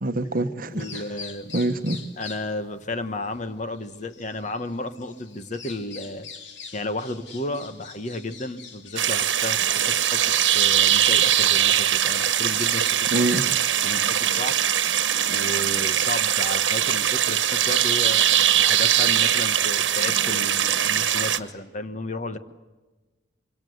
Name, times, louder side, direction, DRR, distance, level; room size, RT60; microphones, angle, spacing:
voice 1, 0.0-1.0 1.5-2.0 13.1-13.4, right 1 dB, 50° right, 10 dB, 1.2 m, -25 dB
Bird vocalization bird call bird song, 0.7-18.0, left 5 dB, 80° left, 2.7 m, -46 dB
voice 2, 0.7-1.6 2.2-6.3 6.7-13.5 13.8-14.6 15.2-22.4, left 2 dB, 40° left, 10 dB, 1.4 m, -33 dB
sound 1, 9.0-21.4, right 10 dB, 85° right, 1.3 m, -21 dB
26.0 x 24.5 x 8.1 m, 1.2 s
head